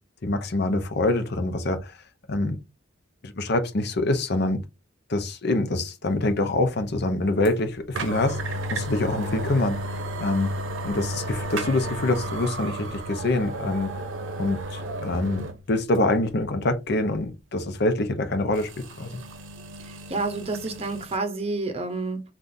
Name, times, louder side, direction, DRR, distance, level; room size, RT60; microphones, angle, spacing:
voice 1, 0.2-2.0 2.3-2.6 3.2-4.6 5.1-9.8 10.2-10.6 10.8-14.0 14.4-19.2, left 2 dB, 55° left, 0.7 m, -25 dB
sound 1, 7.4-7.5 7.9-15.6 15.9-16.0 18.5-21.2, right 1 dB, 75° right, 0.7 m, -33 dB
voice 2, 19.8-22.2, right 3 dB, 30° right, 0.8 m, -29 dB
3.6 x 2.5 x 2.6 m
head